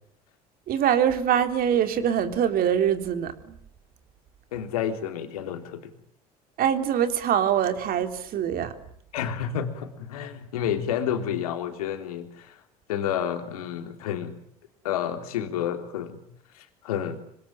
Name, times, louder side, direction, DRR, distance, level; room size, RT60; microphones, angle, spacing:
voice 1, 0.7-3.6 6.6-8.7, right 9 dB, 50° right, 8 dB, 3.4 m, -24 dB
voice 2, 4.5-5.9 9.1-12.6 12.9-14.4 14.8-16.2 16.5-17.2, left 9 dB, 75° left, 7 dB, 3.5 m, -30 dB
25.5 x 25.5 x 9.0 m, 0.67 s
hypercardioid pair, 65°, 19 cm